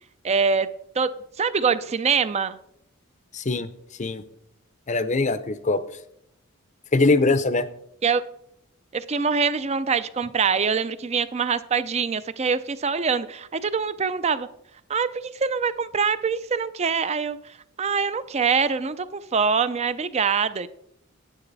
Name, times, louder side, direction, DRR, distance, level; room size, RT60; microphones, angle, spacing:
voice 1, 0.2-0.7 1.0-1.1 1.4-2.6 8.0-8.2 8.9-14.5 14.9-15.1 15.3-20.7, right 5 dB, 30° right, 0.4 m, -24 dB
voice 2, 3.3-3.7 4.0-4.2 4.9-5.8 6.9-7.7, left 3 dB, 35° left, 0.6 m, -22 dB
9.9 x 9.2 x 4.0 m
head